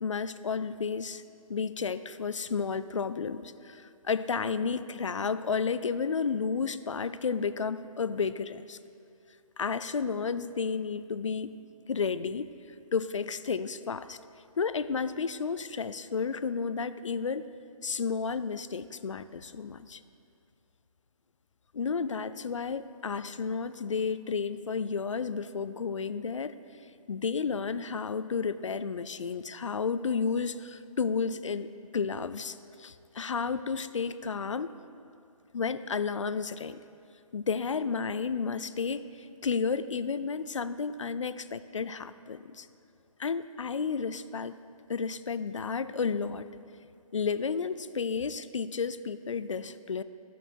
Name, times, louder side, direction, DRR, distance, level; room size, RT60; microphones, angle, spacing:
voice 1, 0.0-1.2 1.5-8.8 9.6-11.5 11.9-12.5 12.9-14.2 14.6-17.5 17.8-20.0 21.7-26.5 27.1-34.7 35.5-36.8 37.3-42.7 43.2-44.5 44.9-46.5 47.1-50.0, left 5 dB, 60° left, 14 dB, 0.4 m, -32 dB
14.0 x 5.4 x 4.6 m, 2.5 s
hypercardioid pair, 180°, 19 cm